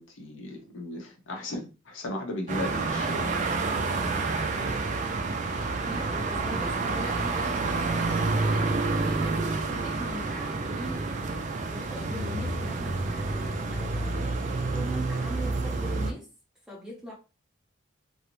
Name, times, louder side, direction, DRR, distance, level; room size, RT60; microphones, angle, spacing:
voice 1, 0.0-3.3, left 1 dB, 75° left, 0.6 m, -36 dB
sound 1, 2.5-16.1, right 3 dB, 35° right, 0.3 m, -29 dB
voice 2, 5.8-11.1 11.6-14.0 14.7-16.3 16.7-17.1, equal, 5° right, 0.7 m, -41 dB
2.4 x 2.0 x 2.9 m
head